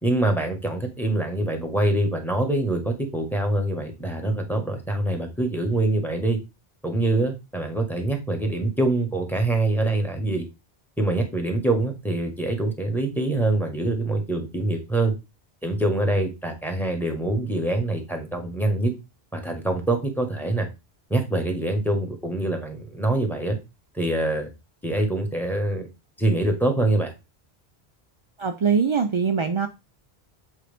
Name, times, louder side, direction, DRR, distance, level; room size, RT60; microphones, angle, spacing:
voice 1, 0.0-6.4 6.8-10.5 11.0-15.1 15.6-18.9 19.3-20.7 21.1-23.6 23.9-24.5 24.8-25.9 26.2-27.1, right 2 dB, ahead, 4 dB, 1.3 m, -24 dB
voice 2, 28.4-29.7, right 6 dB, 50° right, 6 dB, 0.3 m, -22 dB
7.5 x 4.0 x 3.4 m, 0.25 s
omnidirectional pair, 1.1 m